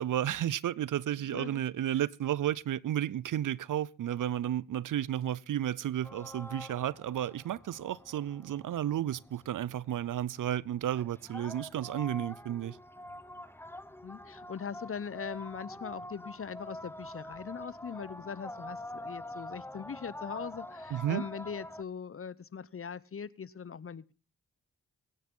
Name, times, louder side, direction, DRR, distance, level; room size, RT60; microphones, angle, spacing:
voice 1, 0.0-12.8 20.9-21.2, right 11 dB, 65° right, 0.6 m, -32 dB
voice 2, 1.3-1.6 14.0-24.1, left 6 dB, 40° left, 0.7 m, -41 dB
sound 1, 6.0-21.8, left 1 dB, 5° left, 0.9 m, -46 dB
22.0 x 9.4 x 3.8 m
supercardioid pair, 45°, 34 cm